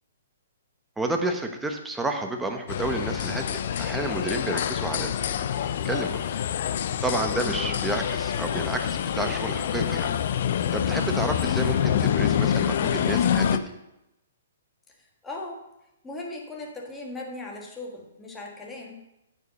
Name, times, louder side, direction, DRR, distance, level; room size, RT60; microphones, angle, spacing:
voice 1, 1.0-5.3 5.8-6.2 7.0-10.1 10.7-13.6, right 2 dB, 5° right, 4 dB, 1.0 m, -30 dB
sound 1, 2.7-13.6, left 9 dB, 55° left, 0.5 m, -26 dB
voice 2, 7.3-7.8 15.0-15.6 16.0-19.0, left 2 dB, 10° left, -1 dB, 1.6 m, -39 dB
9.2 x 5.4 x 6.8 m, 0.89 s
hypercardioid pair, 150°, 0 cm